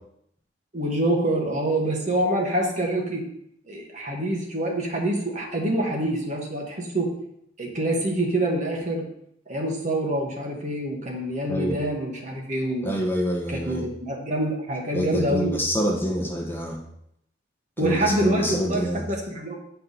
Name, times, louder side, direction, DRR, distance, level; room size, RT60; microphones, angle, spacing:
voice 1, 0.7-3.2 3.7-7.1 7.6-9.1 9.5-12.9 13.5-15.5 17.8-19.6, right 1 dB, 40° right, 0 dB, 1.3 m, -26 dB
voice 2, 11.5-11.8 12.8-13.9 14.9-16.8 17.8-19.1, equal, 10° left, -1 dB, 1.0 m, -26 dB
8.6 x 4.7 x 3.9 m, 0.75 s
head